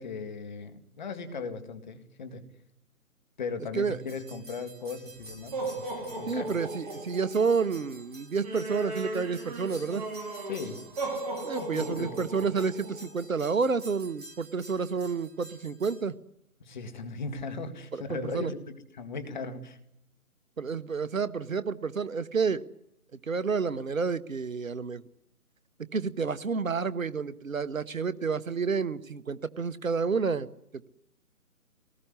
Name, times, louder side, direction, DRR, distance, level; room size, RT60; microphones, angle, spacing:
voice 1, 0.0-2.4 3.4-6.5 10.5-10.8 11.6-12.3 16.6-19.8, left 4 dB, 30° left, 8 dB, 2.1 m, -38 dB
sound 1, 4.1-16.0, right 2 dB, 25° right, 3.0 m, -38 dB
voice 2, 6.3-10.1 11.4-16.1 17.9-18.5 20.6-22.6 23.3-25.0 25.9-30.5, right 5 dB, 60° right, 15 dB, 1.1 m, -29 dB
23.0 x 19.0 x 9.8 m, 0.78 s
figure-of-eight pair, 150°, 45 cm